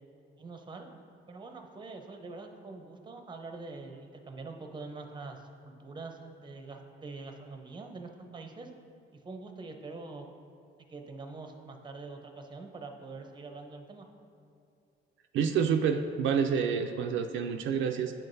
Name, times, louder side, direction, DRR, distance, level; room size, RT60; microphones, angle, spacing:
voice 1, 0.4-0.9 1.3-8.7 9.1-10.3 10.8-14.1, right 3 dB, 25° right, 4 dB, 0.6 m, -44 dB
voice 2, 15.3-18.1, right 7 dB, 75° right, 5 dB, 0.4 m, -28 dB
8.9 x 5.8 x 2.6 m, 2.6 s
cardioid pair, 90°, 20 cm